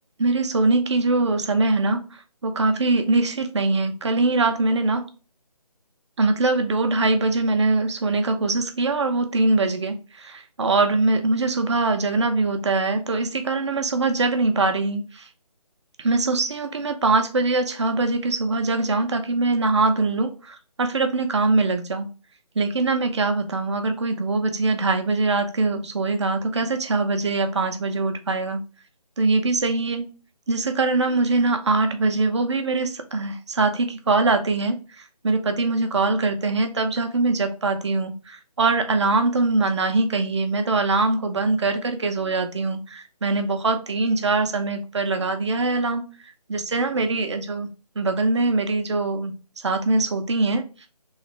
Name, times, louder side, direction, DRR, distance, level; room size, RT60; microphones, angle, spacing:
voice 1, 0.2-5.1 6.2-15.3 16.0-22.1 22.6-28.6 29.2-30.1 30.5-46.0 46.5-47.7 48.0-49.3 49.6-50.6, right 3 dB, 45° right, 0.6 m, -22 dB
3.1 x 2.4 x 3.0 m
figure-of-eight pair, 160°, 20 cm